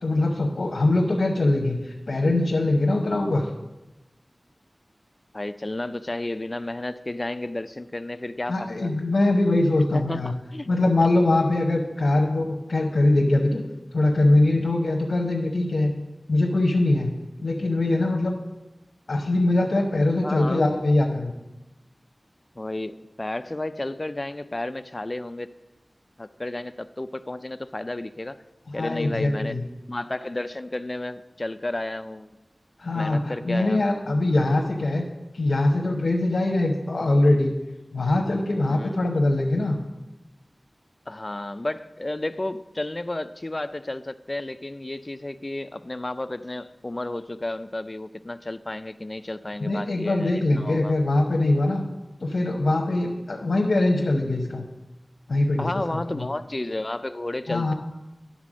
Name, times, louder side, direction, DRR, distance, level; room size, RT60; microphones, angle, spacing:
voice 1, 0.0-3.5 8.5-10.3 10.7-13.6 13.9-15.9 16.3-17.1 17.4-18.3 19.1-21.3 28.7-29.6 32.8-35.0 35.3-37.5 37.9-39.8 49.6-51.8 52.2-54.6 55.3-56.3 57.5-57.7, left 2 dB, 85° left, 1 dB, 0.8 m, -22 dB
voice 2, 5.3-8.9 9.9-10.7 11.0-11.1 20.2-20.6 22.6-25.5 26.2-28.4 28.7-29.6 29.9-32.3 32.9-33.9 38.7-39.0 41.1-50.9 55.6-57.7, left 2 dB, 35° left, 13 dB, 0.4 m, -32 dB
10.5 x 4.1 x 6.1 m, 1.0 s
wide cardioid pair, 60°, 0 cm